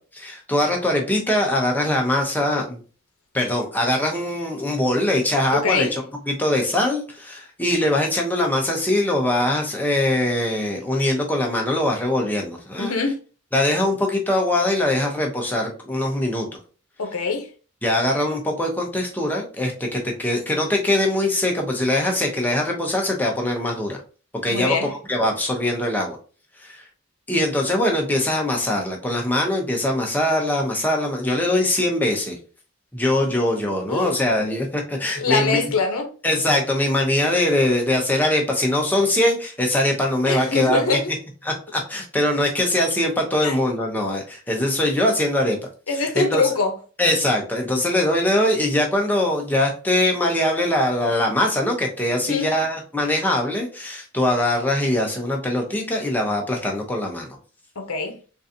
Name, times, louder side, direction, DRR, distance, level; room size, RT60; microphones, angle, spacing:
voice 1, 0.1-2.8 3.3-5.9 6.3-13.0 13.5-16.5 17.8-24.0 24.4-26.2 26.6-26.8 27.3-32.4 32.9-35.6 36.2-40.8 41.4-45.6 46.0-46.4 47.0-57.4, left 1 dB, 10° left, 0.7 m, -22 dB
voice 2, 5.5-6.0 12.8-13.2 17.0-17.5 24.5-24.9 33.9-34.2 35.2-36.1 40.3-41.1 43.4-43.6 45.9-46.7 52.3-52.5 57.8-58.2, left 4 dB, 80° left, 0.7 m, -23 dB
3.8 x 2.6 x 2.6 m
head